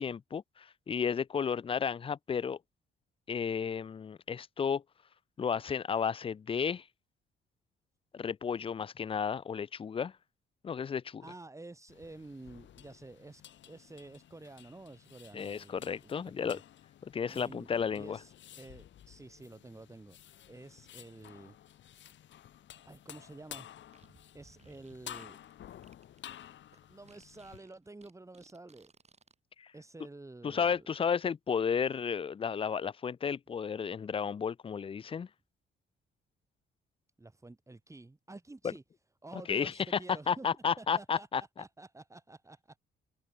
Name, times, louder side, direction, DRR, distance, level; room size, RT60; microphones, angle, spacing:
voice 1, 0.0-2.6 3.3-4.8 5.4-6.9 8.1-10.1 10.6-11.2 15.3-16.6 17.0-18.2 29.6-29.7 30.4-35.3 38.6-38.7 39.5-40.0 40.3-41.4, left 6 dB, 25° left, 0.4 m, -33 dB
voice 2, 11.2-16.6 17.3-20.2 20.5-21.6 22.8-23.8 24.3-25.4 26.9-28.9 29.7-30.9 37.2-38.8 39.2-40.5 40.8-42.8, right 2 dB, 15° right, 2.8 m, -50 dB
sound 1, 11.9-27.6, left 11 dB, 70° left, 2.2 m, -53 dB
Fart, 23.8-29.4, right 5 dB, 35° right, 6.2 m, -62 dB
cardioid pair, 90°, 20 cm